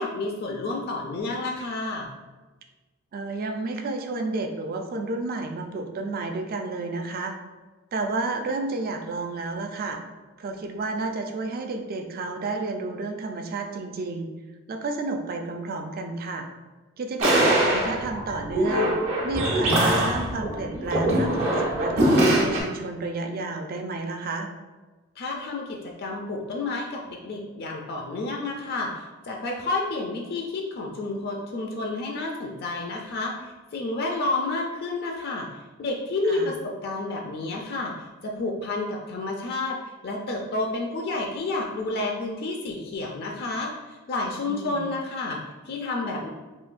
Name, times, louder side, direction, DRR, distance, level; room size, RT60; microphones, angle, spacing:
voice 1, 0.0-2.1 25.2-39.8 40.0-46.3, left 2 dB, 50° left, 1 dB, 0.3 m, -30 dB
voice 2, 3.1-7.3 7.9-10.0 10.4-14.3 14.7-16.5 17.0-18.9 19.2-24.5 36.3-36.5 44.5-44.9, right 3 dB, 45° right, 5 dB, 0.3 m, -31 dB
sound 1, 17.2-22.6, right 1 dB, 75° right, 0.9 m, -22 dB
3.8 x 2.7 x 2.4 m, 1.2 s
head